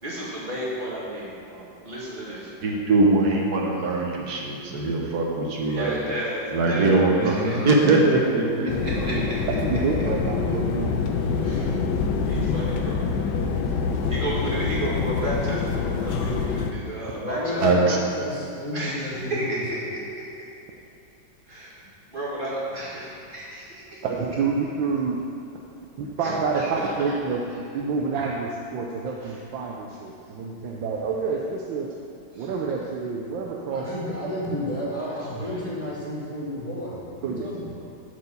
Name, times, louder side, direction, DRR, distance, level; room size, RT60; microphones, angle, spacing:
voice 1, 0.0-1.3 1.8-2.7 5.6-7.6 9.0-9.1 11.4-11.7 12.2-13.0 14.1-17.7 18.7-20.0 21.5-21.8 22.1-23.8 26.2-26.7 29.2-29.3 30.8-30.9 32.3-32.5 35.4-35.6, right 1 dB, 25° right, -7 dB, 2.0 m, -32 dB
voice 2, 2.6-6.0 6.5-7.3 7.7-8.7 17.6-18.0, right 2 dB, 60° right, -1 dB, 1.4 m, -21 dB
voice 3, 7.2-8.0 8.4-9.6 17.2-19.8 21.8-21.9 33.7-37.7, left 1 dB, 5° left, -8 dB, 1.9 m, -31 dB
sound 1, 8.7-16.7, left 5 dB, 70° left, 1.2 m, -26 dB
voice 4, 9.1-11.0 11.4-11.9 14.1-14.3 24.0-25.2 26.0-31.9 32.4-33.9 37.2-37.5, right 4 dB, 75° right, -1 dB, 1.4 m, -28 dB
8.0 x 4.5 x 7.0 m, 2.8 s
omnidirectional pair, 2.2 m